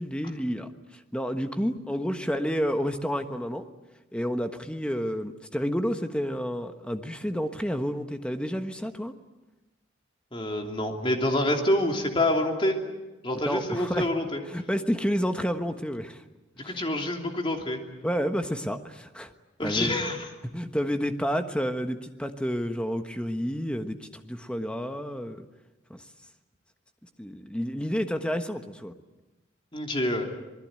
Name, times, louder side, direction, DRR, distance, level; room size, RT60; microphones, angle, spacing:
voice 1, 0.0-3.7 4.1-9.1 13.4-14.1 14.5-16.2 16.6-16.8 18.0-19.3 19.6-20.0 20.5-25.4 25.9-26.0 27.2-28.9, equal, 5° left, 7 dB, 1.3 m, -30 dB
voice 2, 10.3-12.7 13.2-14.4 16.6-17.8 19.6-20.2 29.7-30.3, left 1 dB, 25° left, 2 dB, 3.1 m, -27 dB
26.5 x 20.5 x 9.0 m, 1.1 s
head